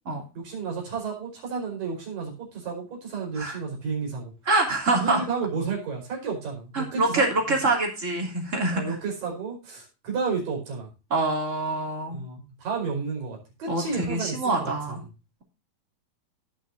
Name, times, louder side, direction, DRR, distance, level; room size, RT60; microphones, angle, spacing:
voice 1, 0.3-4.3 5.0-7.3 8.7-10.9 12.1-15.0, right 5 dB, 80° right, -1 dB, 6.6 m, -32 dB
voice 2, 4.5-5.2 6.7-8.9 11.1-12.2 13.7-15.0, right 2 dB, 25° right, 1 dB, 2.9 m, -25 dB
18.5 x 6.4 x 2.6 m, 0.30 s
omnidirectional pair, 3.9 m